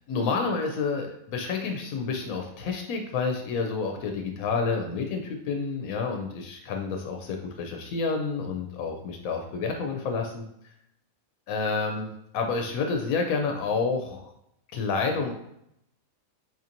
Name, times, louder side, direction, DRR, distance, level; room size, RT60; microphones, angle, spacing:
voice 1, 0.1-10.4 11.5-14.2 14.7-15.3, left 4 dB, 90° left, 3 dB, 1.0 m, -29 dB
4.7 x 2.8 x 2.5 m, 0.75 s
omnidirectional pair, 1.4 m